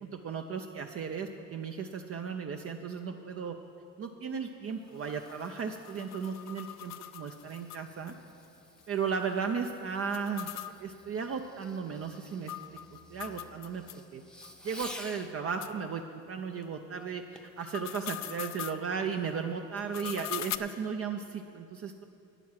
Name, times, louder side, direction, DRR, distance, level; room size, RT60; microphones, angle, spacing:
voice 1, 0.0-3.5 4.0-8.1 8.9-13.8 14.1-14.2 14.6-22.0, right 6 dB, 50° right, 4 dB, 0.6 m, -36 dB
Fireworks, 4.4-15.4 17.4-17.6 18.2-18.3, left 1 dB, 5° left, 0.8 m, -52 dB
sound 1, 4.9-8.1 8.4-8.5 8.8-8.9 10.0-14.0 14.4-14.5 15.1-15.2 15.6-15.7 17.4-18.8 19.8-20.6, left 13 dB, 65° left, 0.5 m, -42 dB
9.5 x 9.0 x 7.5 m, 2.6 s
cardioid pair, 90°, 30 cm